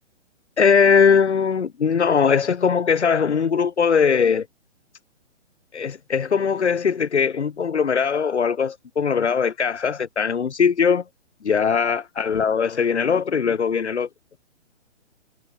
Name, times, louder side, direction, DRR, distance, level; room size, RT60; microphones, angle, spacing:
voice 1, 0.6-4.5 5.7-11.0 11.4-14.1, left 6 dB, 65° left, 2.3 m, -20 dB
hypercardioid pair, 180°, 37 cm